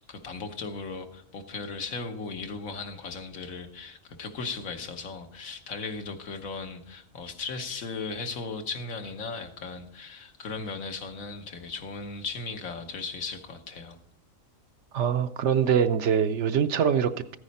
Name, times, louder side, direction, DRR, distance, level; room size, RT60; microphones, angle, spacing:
voice 1, 0.1-14.0, left 4 dB, 80° left, 1.5 m, -37 dB
voice 2, 14.9-17.4, right 7 dB, 65° right, 0.8 m, -24 dB
14.0 x 9.7 x 4.1 m
omnidirectional pair, 1.4 m